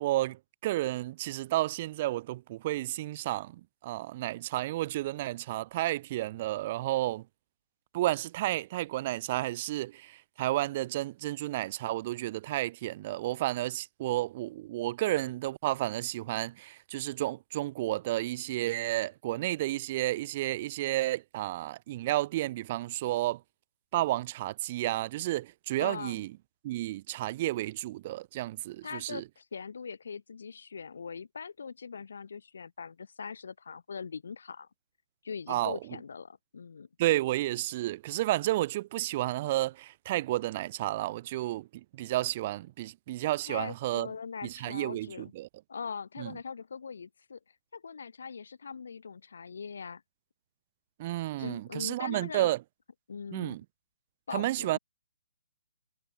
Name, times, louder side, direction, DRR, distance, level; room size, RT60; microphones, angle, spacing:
voice 1, 0.0-7.2 7.9-23.4 23.9-26.3 26.6-29.2 35.5-35.8 37.0-44.1 44.4-45.5 46.2-46.3 51.0-52.6 53.3-53.6 54.3-54.8, right 16 dB, 30° right, 1.0 m, -31 dB
voice 2, 25.8-26.2 28.8-34.7 35.2-36.9 43.4-45.3 45.7-47.4 47.7-50.0 51.4-52.5 53.1-53.6 54.3-54.8, left 6 dB, 70° left, 4.4 m, -41 dB
hypercardioid pair, 160°, 0 cm